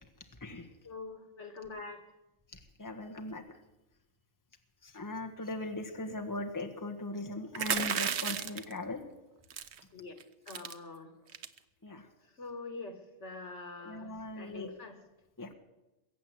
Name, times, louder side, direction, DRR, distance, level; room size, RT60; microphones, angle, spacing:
voice 1, 0.8-2.0 9.9-10.2 10.5-11.1 12.4-15.0, left 3 dB, 85° left, 6 dB, 2.2 m, -45 dB
voice 2, 2.8-3.4 4.8-9.0 11.8-12.0 13.8-14.7 15.4-15.5, left 2 dB, 15° left, 3 dB, 1.4 m, -39 dB
sound 1, 7.5-8.7 9.5-9.8 10.2-10.3 10.5-10.7 11.3-11.6, right 8 dB, 70° right, 1.1 m, -33 dB
22.0 x 8.3 x 7.8 m, 0.99 s
omnidirectional pair, 1.2 m